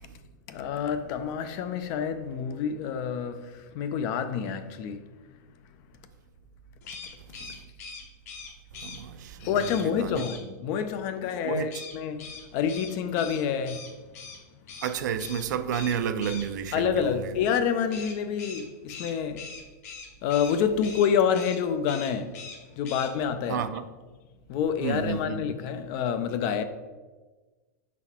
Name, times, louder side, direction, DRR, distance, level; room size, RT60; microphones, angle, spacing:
voice 1, 0.5-5.1 9.4-13.9 16.7-19.5 20.2-22.3 22.8-23.7 24.5-26.6, left 7 dB, 35° left, 0.4 m, -28 dB
sound 1, 6.8-9.0 9.6-9.9 10.1-10.4 11.7-14.4 14.7-14.9 15.2-15.4 15.7-16.5 17.9-20.6 20.8-21.1 21.3-21.6 21.9-22.6 22.8-23.1, left 5 dB, 55° left, 1.0 m, -42 dB
voice 2, 8.7-9.5 9.8-10.2 11.4-11.7 14.8-17.3 23.5-23.8 24.8-25.5, right 8 dB, 70° right, 0.5 m, -31 dB
5.7 x 4.1 x 4.2 m
supercardioid pair, 165°, 10 cm